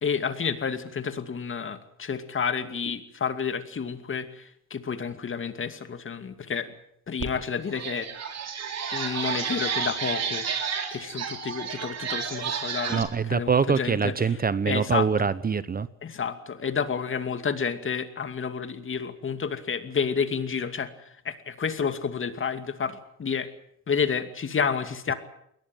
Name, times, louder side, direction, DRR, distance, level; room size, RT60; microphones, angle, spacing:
voice 1, 0.0-6.7 7.1-8.1 8.9-10.5 10.9-14.4 14.7-15.1 16.0-20.9 21.2-23.5 23.9-25.1, left 6 dB, 40° left, 9 dB, 2.4 m, -30 dB
sound 1, 7.2-7.3 7.7-13.0, right 6 dB, 60° right, 3.9 m, -31 dB
voice 2, 12.9-15.9, right 5 dB, 30° right, 17 dB, 0.9 m, -24 dB
22.0 x 18.5 x 9.2 m, 0.72 s
cardioid pair, 90°, 30 cm